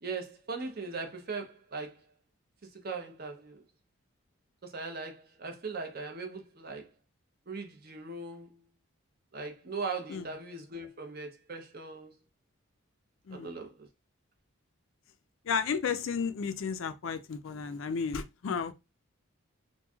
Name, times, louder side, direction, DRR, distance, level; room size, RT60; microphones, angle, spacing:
voice 1, 0.0-2.0 2.7-3.6 4.6-6.9 7.5-8.6 9.3-12.2 13.3-13.9, right 4 dB, 45° right, 0.6 m, -39 dB
voice 2, 15.5-18.7, left 6 dB, 65° left, 0.4 m, -33 dB
3.0 x 2.6 x 2.3 m
head